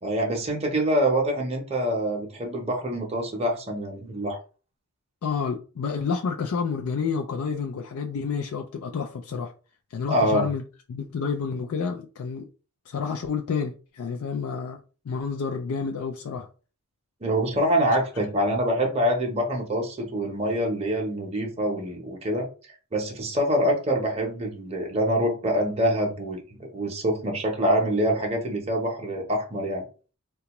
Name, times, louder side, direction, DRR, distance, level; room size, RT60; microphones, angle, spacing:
voice 1, 0.0-4.4 10.1-10.5 17.2-22.5 22.9-29.8, equal, 25° right, 0.7 m, -25 dB
voice 2, 5.2-9.5 9.9-10.6 10.9-12.5 12.9-14.8 15.1-16.5, left 5 dB, 75° left, 0.4 m, -29 dB
3.8 x 2.3 x 2.9 m
head